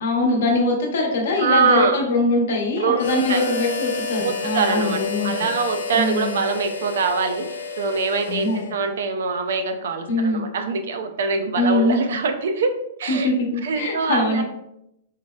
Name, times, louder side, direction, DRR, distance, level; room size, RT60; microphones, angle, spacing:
voice 1, 0.0-5.5 5.9-6.4 8.3-8.6 10.1-10.4 11.6-12.0 13.1-14.4, left 2 dB, 75° left, 0 dB, 0.8 m, -22 dB
voice 2, 1.4-2.0 2.8-3.4 4.2-7.5 7.8-12.7 13.0-13.3 13.6-14.4, right 5 dB, 75° right, 7 dB, 0.4 m, -23 dB
Harmonica, 3.0-9.0, left 4 dB, 90° left, 0.4 m, -30 dB
3.8 x 2.1 x 2.2 m, 0.81 s
hypercardioid pair, 140°, 0 cm